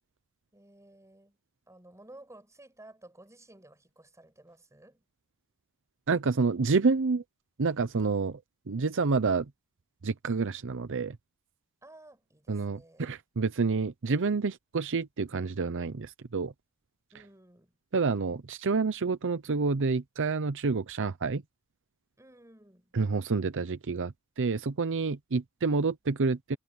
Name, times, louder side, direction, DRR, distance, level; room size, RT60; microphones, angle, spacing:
voice 1, 0.5-1.4 1.7-5.0 11.8-13.1 17.1-17.8 22.2-22.9, right 1 dB, 15° right, 6.0 m, -54 dB
voice 2, 6.1-7.2 7.6-8.4 8.7-9.5 10.0-11.2 12.5-16.5 17.9-21.4 22.9-26.6, right 4 dB, 60° right, 0.7 m, -28 dB
head